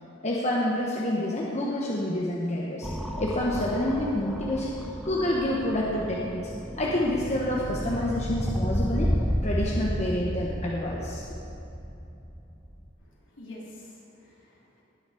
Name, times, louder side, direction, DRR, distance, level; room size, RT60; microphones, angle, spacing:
voice 1, 0.2-2.9 3.2-4.7 5.0-6.5 6.8-9.1 9.4-11.2, left 1 dB, 35° left, -4 dB, 1.2 m, -28 dB
sound 1, 2.8-12.9, equal, ahead, 0.8 m, -32 dB
voice 2, 13.0-14.8, left 1 dB, 65° left, -5 dB, 3.1 m, -47 dB
19.5 x 7.3 x 5.0 m, 2.8 s
head